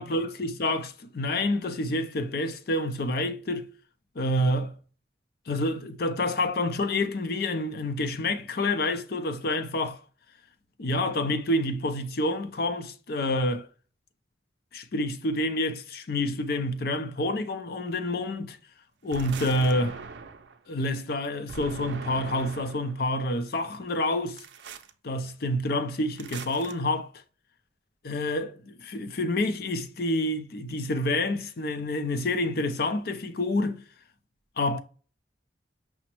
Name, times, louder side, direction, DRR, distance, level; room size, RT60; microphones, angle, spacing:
voice 1, 0.0-3.7 4.2-4.7 5.5-10.0 10.8-13.7 14.7-18.6 19.0-20.0 20.7-24.4 25.0-27.1 28.0-33.8 34.6-34.8, left 1 dB, 55° left, 0.5 m, -28 dB
sound 1, 19.1-20.6 21.5-23.0 24.4-24.9 26.2-26.7, right 5 dB, 70° right, 0.5 m, -41 dB
5.9 x 2.1 x 2.9 m
head